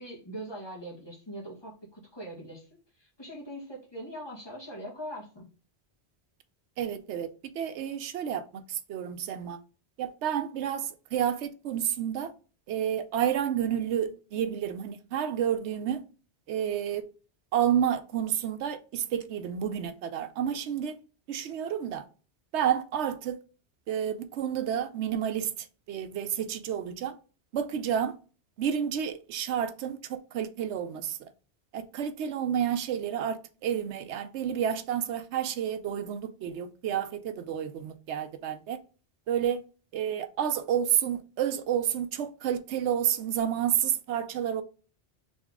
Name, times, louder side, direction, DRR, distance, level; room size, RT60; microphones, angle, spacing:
voice 1, 0.0-2.7 3.0-5.5, equal, 25° left, 1.6 m, -41 dB
voice 2, 6.8-9.6 10.0-12.3 12.7-16.0 16.5-17.0 17.5-21.0 21.3-22.1 22.5-23.4 23.9-27.2 27.5-28.2 28.6-31.3 31.7-38.8 39.3-39.6 39.9-44.6, right 9 dB, 85° right, 0.9 m, -30 dB
3.9 x 3.5 x 3.5 m
omnidirectional pair, 1.1 m